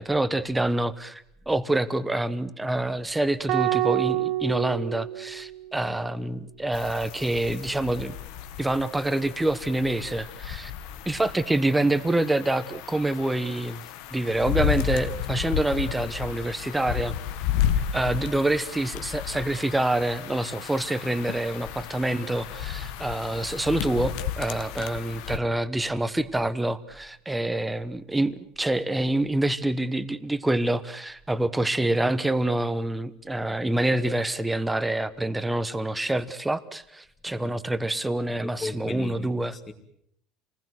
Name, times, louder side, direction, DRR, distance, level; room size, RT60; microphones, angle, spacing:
voice 1, 0.0-8.2 8.6-10.7 11.1-13.8 14.1-17.2 17.9-39.5, right 1 dB, 5° right, 1.0 m, -26 dB
sound 1, 3.5-5.8, right 16 dB, 55° right, 2.5 m, -27 dB
sound 2, 6.7-25.4, left 10 dB, 65° left, 1.7 m, -33 dB
voice 2, 38.4-39.7, left 3 dB, 20° left, 2.5 m, -39 dB
29.0 x 20.0 x 8.0 m
cardioid pair, 170°, 0 cm